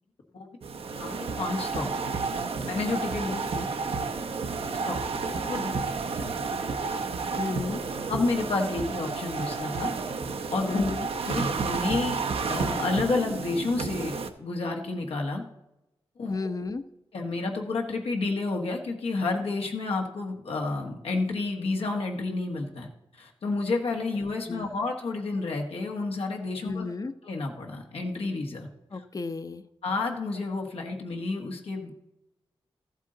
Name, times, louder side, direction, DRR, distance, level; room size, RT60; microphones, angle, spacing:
sound 1, 0.6-14.3, right 4 dB, 80° right, 0.8 m, -31 dB
voice 1, 0.9-1.9 2.7-3.4 4.9-5.7 6.1-6.5 8.1-10.0 10.5-10.9 11.3-15.4 16.2-16.5 17.1-26.9 27.2-28.7 28.9-29.0 29.8-31.9, left 3 dB, 85° left, 1 dB, 1.2 m, -30 dB
voice 2, 7.3-7.8 10.7-11.1 16.3-16.8 24.5-24.8 26.6-27.1 28.9-29.6, left 3 dB, 35° left, 11 dB, 0.6 m, -33 dB
13.5 x 8.1 x 3.8 m, 0.93 s
wide cardioid pair, 85°, 10 cm